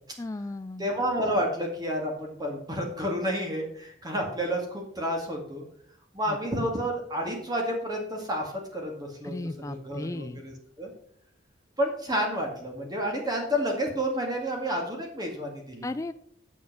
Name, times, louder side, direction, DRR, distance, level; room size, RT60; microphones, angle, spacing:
voice 1, 0.2-0.9 6.3-6.4 9.2-10.4 15.8-16.1, left 2 dB, 15° left, 10 dB, 0.3 m, -35 dB
voice 2, 0.8-5.7 6.1-9.4 9.7-10.9 11.8-15.9, equal, 20° right, 0 dB, 2.0 m, -30 dB
8.1 x 7.2 x 6.0 m, 0.64 s
head